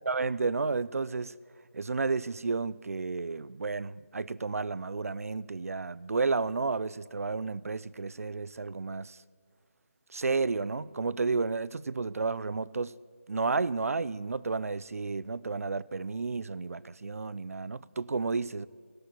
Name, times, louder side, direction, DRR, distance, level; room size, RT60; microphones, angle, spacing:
voice 1, 0.0-1.4 1.7-9.2 10.1-12.9 13.3-18.7, right 4 dB, 75° right, 0.4 m, -32 dB
16.5 x 6.7 x 7.7 m
figure-of-eight pair, 165°, 8 cm